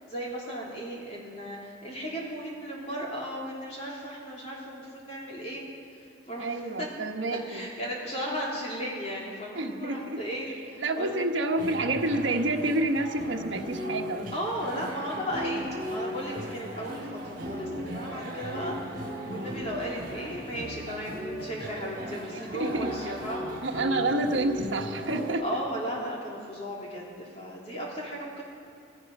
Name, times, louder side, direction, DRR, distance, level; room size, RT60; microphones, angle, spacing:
voice 1, 0.1-5.6 6.3-6.9 7.3-11.1 14.3-15.6 15.9-23.5 25.4-28.4, equal, 30° left, -4 dB, 3.2 m, -35 dB
voice 2, 6.4-7.6 9.5-10.2 10.8-14.3 22.5-22.9 23.6-25.4, right 2 dB, 70° right, 3 dB, 1.2 m, -28 dB
sound 1, 11.6-25.3, equal, 45° right, 3.5 m, -37 dB
16.5 x 16.0 x 5.4 m, 2.7 s
head